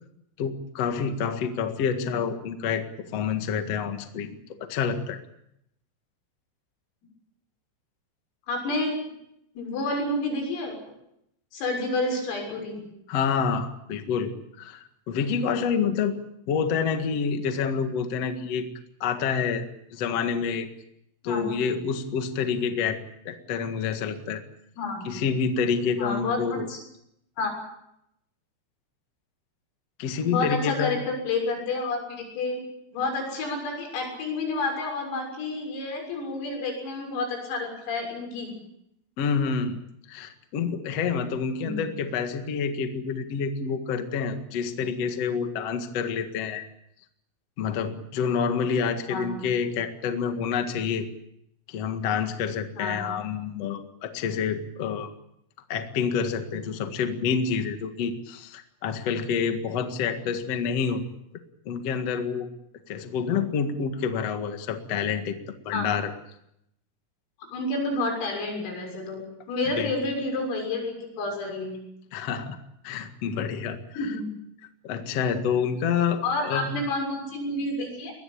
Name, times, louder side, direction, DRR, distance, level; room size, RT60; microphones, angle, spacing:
voice 1, 0.4-4.3 4.6-5.2 13.1-16.2 16.5-18.7 19.0-19.7 19.9-20.7 21.2-23.0 23.2-24.4 25.0-26.7 30.0-31.0 39.2-39.8 40.1-46.7 47.6-51.1 51.7-55.1 55.7-61.0 61.6-62.5 62.9-66.1 69.8-69.9 72.1-72.6 72.8-73.8 74.8-76.7, left 6 dB, 60° left, 7 dB, 1.6 m, -28 dB
voice 2, 8.5-9.0 9.6-10.8 11.5-12.8 21.2-21.5 24.8-25.0 26.0-26.8 27.4-27.5 30.3-32.6 32.9-38.5 41.6-41.9 49.1-49.3 52.7-53.1 65.7-65.9 67.5-71.7 74.0-74.3 76.2-78.1, left 2 dB, 85° left, 2 dB, 9.3 m, -29 dB
22.5 x 20.0 x 8.5 m, 0.78 s
omnidirectional pair, 5.9 m